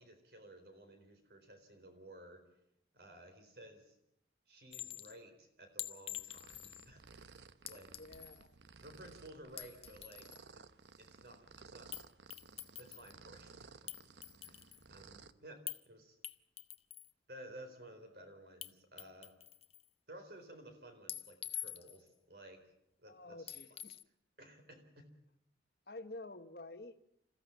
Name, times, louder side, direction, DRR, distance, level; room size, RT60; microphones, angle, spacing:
voice 1, 0.0-2.4 2.9-3.9 4.5-7.9 8.8-10.3 10.5-10.6 11.0-11.9 12.7-14.0 14.4-16.2 17.3-19.3 20.1-22.7 23.0-23.8 24.4-25.1, right 1 dB, 60° right, 6 dB, 4.3 m, -55 dB
Chink clink, 4.7-5.1 5.8-6.9 7.7-8.4 9.4-10.4 11.9-12.1 12.3-13.1 13.9-14.8 15.7-15.8 16.2-17.1 18.6-18.7 19.0-19.8 21.1-22.1 23.5-24.0, left 12 dB, 35° left, 0.7 m, -46 dB
sound 1, 6.2-15.3, right 4 dB, 80° right, 0.9 m, -58 dB
voice 2, 7.9-8.6 23.0-24.0 25.9-27.0, left 2 dB, 60° left, 10 dB, 1.2 m, -50 dB
27.5 x 15.0 x 7.3 m, 0.79 s
head